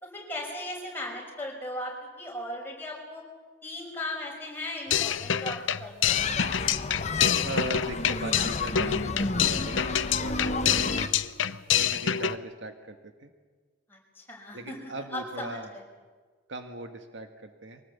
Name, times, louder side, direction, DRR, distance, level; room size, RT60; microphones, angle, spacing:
voice 1, 0.0-3.2 3.6-6.2 13.9-15.8, left 1 dB, 10° left, -2 dB, 5.7 m, -37 dB
sound 1, 4.9-12.4, left 9 dB, 75° left, 0.7 m, -27 dB
sound 2, 6.1-11.1, left 3 dB, 35° left, 1.0 m, -31 dB
voice 2, 7.4-11.1 11.8-13.3 14.5-15.7 16.5-17.8, right 2 dB, 70° right, 6 dB, 1.6 m, -39 dB
23.5 x 18.5 x 8.3 m, 1.4 s
head